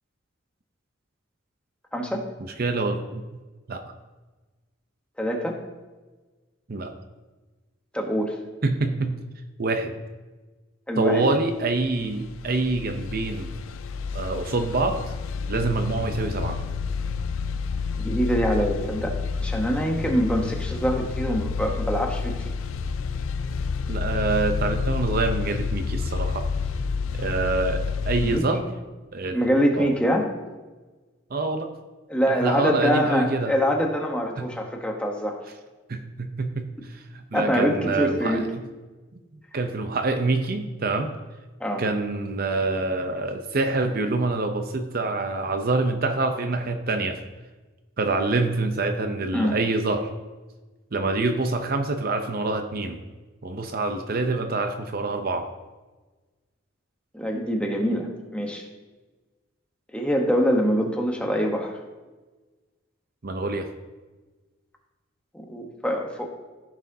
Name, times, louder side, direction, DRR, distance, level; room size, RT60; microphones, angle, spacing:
voice 1, 1.9-2.2 5.2-5.6 7.9-8.3 10.9-11.3 18.0-19.1 19.4-22.5 28.2-28.6 29.2-30.3 32.1-35.4 37.3-38.5 41.6-41.8 49.3-49.6 57.1-58.6 59.9-61.8 65.3-66.3, equal, 5° left, 1 dB, 0.9 m, -24 dB
voice 2, 2.6-3.2 3.7-3.8 6.7-6.9 8.6-9.2 9.6-9.9 11.0-13.5 14.1-15.0 15.5-16.6 23.9-26.5 27.2-28.6 29.1-29.5 29.7-29.9 31.3-31.7 32.3-33.5 34.4-34.5 35.9-38.5 39.5-41.1 41.8-47.2 48.0-50.1 50.9-53.0 53.4-55.5 63.2-63.7, right 3 dB, 45° right, 6 dB, 0.6 m, -26 dB
sound 1, 11.9-28.4, left 5 dB, 70° left, 0.4 m, -29 dB
15.0 x 6.2 x 2.7 m, 1.2 s
head